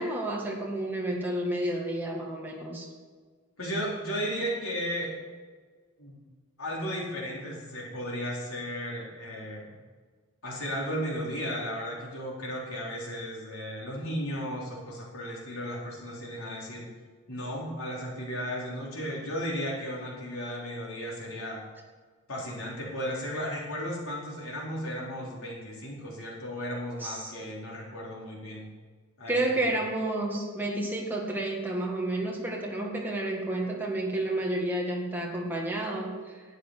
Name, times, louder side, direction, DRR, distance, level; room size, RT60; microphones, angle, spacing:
voice 1, 0.0-2.9 27.0-27.3 29.3-36.4, right 1 dB, 10° right, -2 dB, 1.9 m, -30 dB
voice 2, 3.6-5.1 6.0-6.2 6.6-9.8 10.4-16.9 17.3-21.6 22.3-28.7 29.2-29.7, equal, 80° left, -4 dB, 4.3 m, -35 dB
12.0 x 8.1 x 6.7 m, 1.5 s
head